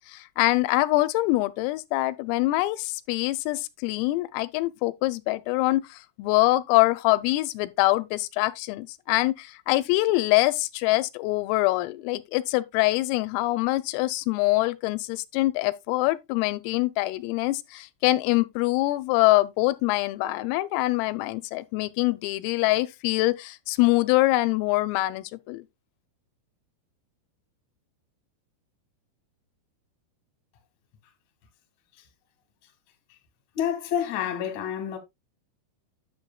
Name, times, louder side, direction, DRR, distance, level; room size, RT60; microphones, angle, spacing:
voice 1, 0.1-25.6, left 19 dB, 85° left, 3.2 m, -24 dB
voice 2, 33.5-35.0, left 9 dB, 60° left, 2.0 m, -28 dB
9.7 x 7.4 x 2.3 m
omnidirectional pair, 5.9 m